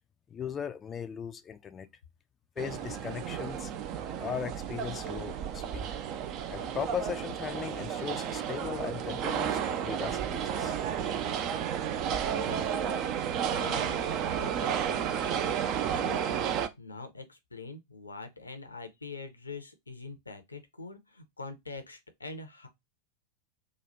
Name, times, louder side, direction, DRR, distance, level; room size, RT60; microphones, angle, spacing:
voice 1, 0.3-1.9 2.6-3.7 4.2-5.9 6.5-10.8, left 8 dB, 25° left, 0.4 m, -38 dB
sound 1, 2.6-16.7, right 8 dB, 40° right, 0.4 m, -32 dB
voice 2, 12.3-13.0 13.5-16.4 16.8-22.7, left 3 dB, 80° left, 0.6 m, -44 dB
3.1 x 2.3 x 4.0 m
figure-of-eight pair, 90°, 0 cm